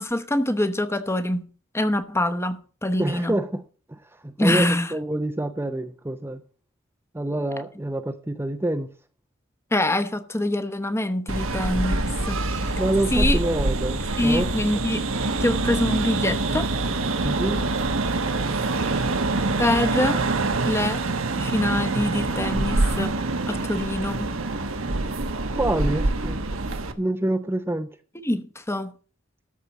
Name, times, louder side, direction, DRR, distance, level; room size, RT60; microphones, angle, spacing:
voice 1, 0.0-1.5 1.7-3.3 4.4-4.9 9.7-12.7 13.1-13.4 14.2-15.1 15.4-16.8 19.6-20.2 20.6-21.1 21.4-23.2 23.5-24.3 28.2-28.9, left 1 dB, 15° left, 0.9 m, -25 dB
voice 2, 3.0-3.6 3.9-6.4 7.1-8.9 12.8-14.5 17.2-17.6 25.5-26.4 27.0-27.9, right 1 dB, 10° right, 0.6 m, -27 dB
sound 1, 11.3-26.9, right 2 dB, 70° right, 1.2 m, -25 dB
13.0 x 4.4 x 8.1 m
head